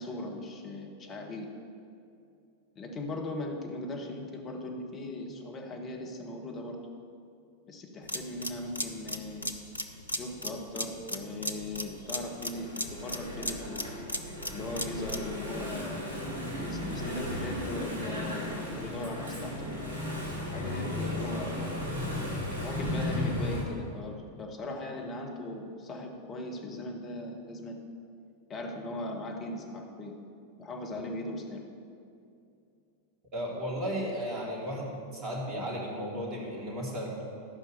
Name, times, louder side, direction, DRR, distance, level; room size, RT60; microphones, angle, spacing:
voice 1, 0.0-1.5 2.7-6.8 7.7-9.5 10.1-13.9 14.5-16.2 16.6-19.7 20.5-21.7 22.5-27.9 28.5-30.1 30.6-31.6, left 2 dB, 30° left, 2 dB, 1.5 m, -39 dB
sound 1, 8.0-15.3, left 1 dB, 85° left, 0.6 m, -37 dB
Engine / Mechanisms, 11.5-23.6, left 1 dB, 65° right, 2.8 m, -35 dB
voice 2, 33.3-37.1, equal, 35° right, -3 dB, 2.9 m, -34 dB
13.5 x 5.5 x 6.8 m, 2.5 s
figure-of-eight pair, 90°, 0 cm